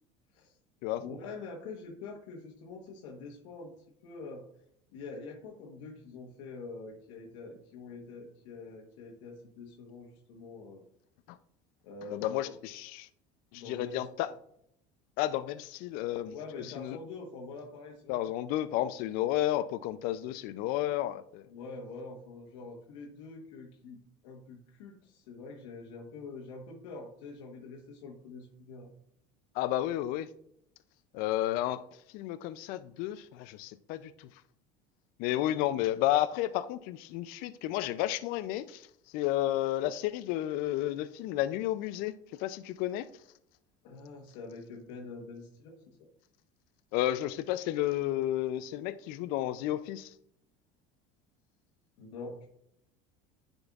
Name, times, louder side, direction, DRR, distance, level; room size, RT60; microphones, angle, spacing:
voice 1, 1.0-3.7 4.0-4.5 4.9-10.8 11.8-12.5 13.5-14.0 16.3-18.2 21.5-28.9 43.8-46.0 52.0-52.5, left 3 dB, 85° left, 1.1 m, -45 dB
voice 2, 12.1-13.1 13.5-14.3 15.2-16.3 16.8-17.0 18.1-21.5 29.5-30.3 31.1-31.9 32.1-34.3 35.2-38.9 39.1-42.1 42.4-43.1 46.9-50.1, left 13 dB, 65° left, 0.4 m, -32 dB
9.7 x 5.2 x 2.4 m
supercardioid pair, 115°, 16 cm